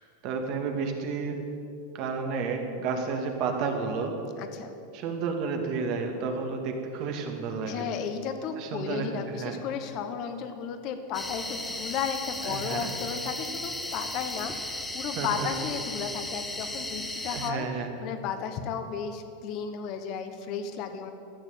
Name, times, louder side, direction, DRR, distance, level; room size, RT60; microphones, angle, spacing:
voice 1, 0.2-1.4 1.9-4.1 4.9-7.8 8.6-9.6 12.4-12.9 15.2-15.5 17.3-17.9, right 5 dB, 50° right, 3 dB, 2.0 m, -31 dB
voice 2, 4.4-4.8 7.6-21.1, left 7 dB, 45° left, 8 dB, 1.3 m, -34 dB
sound 1, 11.1-17.5, left 1 dB, 5° left, 1.0 m, -35 dB
14.0 x 6.7 x 9.3 m, 2.6 s
supercardioid pair, 135°, 0 cm